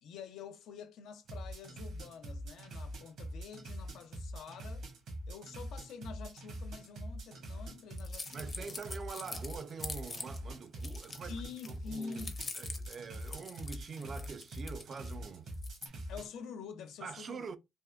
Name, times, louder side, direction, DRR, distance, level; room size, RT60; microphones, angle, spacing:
voice 1, 0.0-4.9 5.3-8.8 11.1-12.4 16.1-17.4, left 6 dB, 80° left, 0.4 m, -47 dB
sound 1, 1.2-16.3, equal, 75° right, 1.0 m, -44 dB
sound 2, 8.0-10.4 10.7-15.1 15.5-15.9, left 3 dB, 30° left, 0.6 m, -45 dB
voice 2, 8.3-11.4 11.7-12.2 12.6-15.5 17.0-17.6, right 5 dB, 50° right, 0.3 m, -45 dB
3.4 x 2.1 x 2.2 m
cardioid pair, 90°, 0 cm